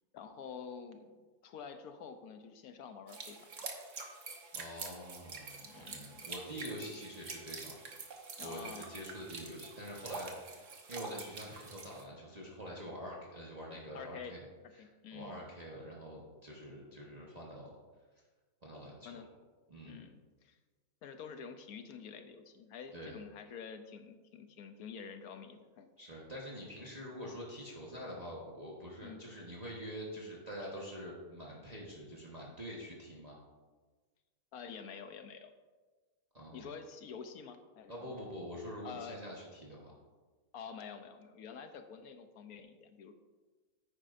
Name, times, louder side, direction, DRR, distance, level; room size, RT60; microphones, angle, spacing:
voice 1, 0.1-3.5 5.6-6.3 8.4-8.9 13.9-14.3 14.6-15.5 19.0-19.3 19.8-20.6 21.0-25.9 29.0-29.2 34.5-35.5 36.5-37.9 38.8-39.2 40.5-43.1, left 6 dB, 70° left, 8 dB, 1.1 m, -48 dB
sound 1, 3.1-12.0, right 4 dB, 55° right, 1.3 m, -46 dB
voice 2, 4.6-7.7 8.4-14.4 14.8-17.7 18.6-19.2 19.7-20.0 22.9-23.2 26.0-33.4 36.3-36.7 37.9-39.9, equal, 25° right, -4 dB, 1.2 m, -46 dB
9.8 x 9.0 x 2.6 m, 1.3 s
omnidirectional pair, 1.6 m